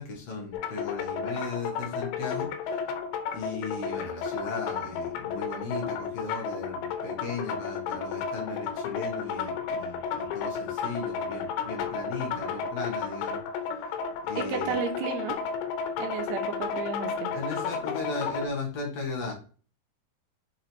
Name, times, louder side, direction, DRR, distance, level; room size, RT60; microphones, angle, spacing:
voice 1, 0.0-2.9 3.3-13.4 13.7-14.0 14.2-14.8 17.3-19.3, left 3 dB, 50° left, -1 dB, 2.3 m, -36 dB
sound 1, 0.5-18.5, left 6 dB, 85° left, 3.2 m, -33 dB
voice 2, 14.4-15.4 16.0-17.3, right 6 dB, 80° right, 5 dB, 2.8 m, -33 dB
7.0 x 3.8 x 4.6 m, 0.38 s
omnidirectional pair, 5.0 m